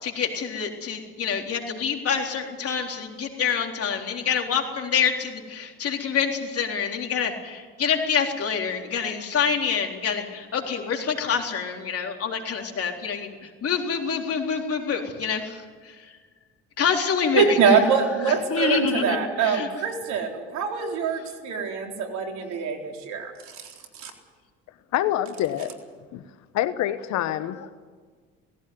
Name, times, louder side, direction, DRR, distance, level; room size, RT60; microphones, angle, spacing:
voice 1, 0.0-13.4 13.6-16.0 16.8-17.6 18.5-19.7, left 6 dB, 50° left, 3 dB, 3.9 m, -26 dB
voice 2, 17.4-24.1, right 6 dB, 70° right, 3 dB, 4.0 m, -24 dB
voice 3, 24.9-25.7 26.1-26.2 26.5-27.7, left 12 dB, 70° left, 13 dB, 1.2 m, -26 dB
18.5 x 16.0 x 9.6 m, 1.5 s
supercardioid pair, 70°, 29 cm